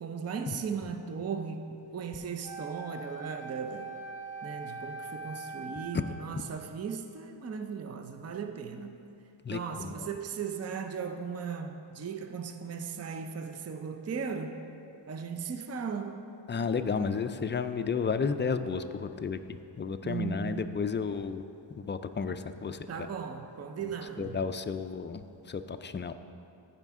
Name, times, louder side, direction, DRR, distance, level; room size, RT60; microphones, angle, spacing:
voice 1, 0.0-3.9 4.4-9.0 9.5-14.6 15.1-16.3 20.0-20.7 22.9-24.4, right 6 dB, 35° right, 6 dB, 0.5 m, -37 dB
Wind instrument woodwind instrument, 2.4-6.2, right 4 dB, 15° right, 1.4 m, -42 dB
voice 2, 9.4-9.9 16.5-21.4 21.8-23.1 24.2-26.1, left 5 dB, 25° left, 9 dB, 0.4 m, -32 dB
14.5 x 5.1 x 3.6 m, 2.6 s
wide cardioid pair, 70°, 46 cm